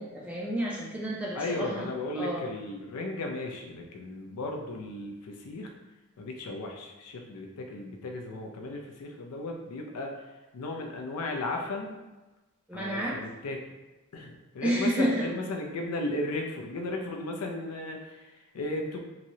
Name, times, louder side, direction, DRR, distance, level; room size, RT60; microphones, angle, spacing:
voice 1, 0.0-1.9 2.1-2.4 12.7-13.2 14.6-15.2, right 1 dB, 5° right, -4 dB, 0.3 m, -30 dB
voice 2, 1.3-5.7 6.2-12.0 12.7-13.6 14.1-19.0, left 2 dB, 80° left, 1 dB, 0.4 m, -35 dB
3.0 x 2.7 x 2.7 m, 1.1 s
head